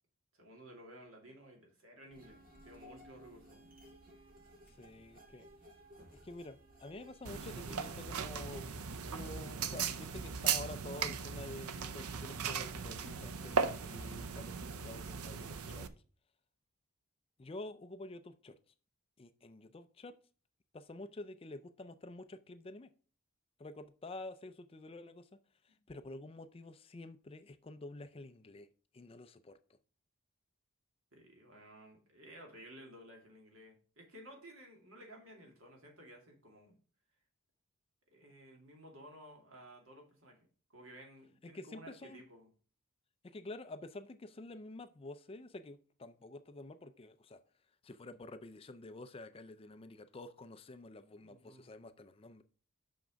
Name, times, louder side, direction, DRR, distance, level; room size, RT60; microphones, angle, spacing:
voice 1, 0.3-3.7 25.7-25.8 31.1-36.7 38.1-40.4 40.7-42.5 51.2-51.7, right 1 dB, 65° right, 2.3 m, -55 dB
sound 1, 2.1-8.7, equal, 40° right, 1.9 m, -57 dB
voice 2, 4.7-5.5 6.1-14.5 14.8-15.9 17.4-18.6 19.2-20.1 20.7-22.9 23.6-25.3 25.6-28.7 28.9-29.6 41.5-42.2 43.2-47.4 47.8-52.4, left 2 dB, 25° left, 0.4 m, -49 dB
sound 2, 7.3-15.9, right 6 dB, 90° right, 0.6 m, -38 dB
6.1 x 5.8 x 5.1 m
head